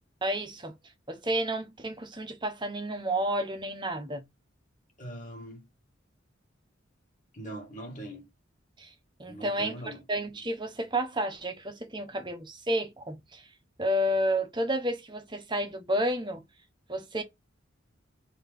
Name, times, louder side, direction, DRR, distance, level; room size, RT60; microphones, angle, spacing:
voice 1, 0.2-0.8 1.1-4.3 8.8-8.9 9.2-13.5 13.8-16.4 16.9-17.2, right 1 dB, 25° right, 1.0 m, -31 dB
voice 2, 5.0-5.7 7.3-8.3 9.3-10.0, right 1 dB, 40° left, 1.9 m, -41 dB
4.2 x 3.0 x 3.5 m
head